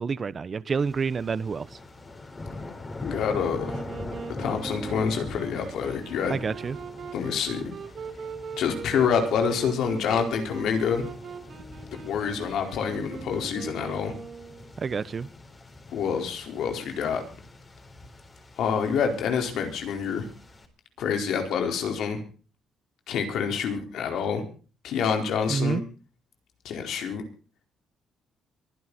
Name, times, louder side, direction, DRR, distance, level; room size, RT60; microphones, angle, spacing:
voice 1, 0.0-1.7 6.3-6.8 14.8-15.3 25.5-25.8, right 5 dB, 40° right, 0.9 m, -28 dB
sound 1, 0.8-20.7, left 2 dB, 30° left, 4.3 m, -43 dB
voice 2, 3.0-3.8 4.4-6.4 7.1-7.6 8.6-11.1 11.9-14.2 15.9-17.2 18.6-20.3 21.0-22.2 23.1-24.4 24.8-25.8 26.6-27.2, left 6 dB, 75° left, 4.5 m, -27 dB
Wind instrument woodwind instrument, 3.6-14.7, right 5 dB, 55° right, 3.0 m, -40 dB
23.5 x 11.0 x 4.2 m
cardioid pair, 90°, 0 cm